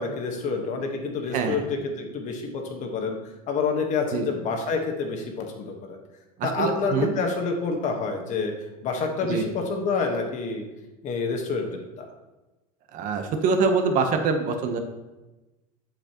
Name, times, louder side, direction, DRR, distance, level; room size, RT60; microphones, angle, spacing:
voice 1, 0.0-3.2 3.5-6.0 6.4-8.5 8.8-10.6 11.0-12.1, left 4 dB, 40° left, 3 dB, 1.3 m, -28 dB
voice 2, 6.4-7.1 9.2-9.5 12.9-14.8, right 4 dB, 45° right, 6 dB, 0.9 m, -24 dB
7.7 x 6.6 x 2.9 m, 1.1 s
supercardioid pair, 130°, 19 cm